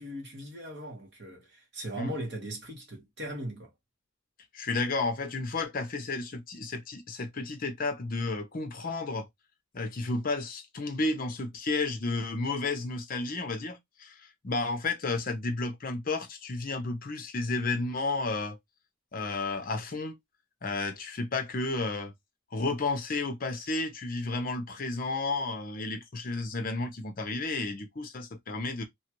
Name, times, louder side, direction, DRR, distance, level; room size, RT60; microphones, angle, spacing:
voice 1, 0.0-3.7, right 1 dB, 55° right, 1.2 m, -39 dB
voice 2, 4.5-9.3 9.7-18.6 19.1-20.2 20.6-22.1 22.5-28.8, left 3 dB, 40° left, 0.6 m, -32 dB
2.9 x 2.4 x 2.9 m
head